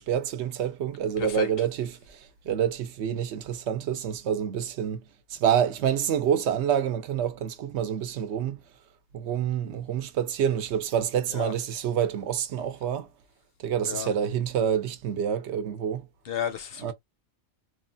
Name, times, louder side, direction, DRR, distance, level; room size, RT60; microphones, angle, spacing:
voice 1, 0.0-5.0 5.3-8.6 9.1-13.1 13.6-16.1 16.8-16.9, right 9 dB, 80° right, 0.9 m, -27 dB
voice 2, 1.2-1.7 11.3-11.5 13.9-14.1 16.2-16.9, left 8 dB, 65° left, 0.7 m, -33 dB
3.0 x 2.1 x 2.5 m
omnidirectional pair, 1.2 m